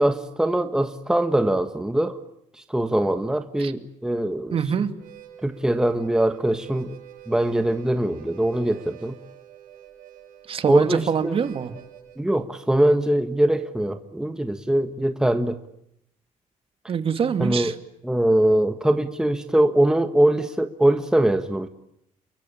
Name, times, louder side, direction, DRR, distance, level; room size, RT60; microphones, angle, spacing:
voice 1, 0.0-2.2 2.7-4.6 5.4-7.0 7.3-9.1 10.7-11.4 12.2-15.6 17.4-17.7 18.0-21.7, right 1 dB, 5° right, 8 dB, 1.5 m, -22 dB
voice 2, 4.5-4.9 10.5-11.7 16.9-17.7, right 7 dB, 40° right, 9 dB, 2.5 m, -24 dB
Harmonica, 4.9-12.2, right 11 dB, 85° right, 6.1 m, -47 dB
29.0 x 23.5 x 8.7 m, 0.79 s
cardioid pair, 135°, 14 cm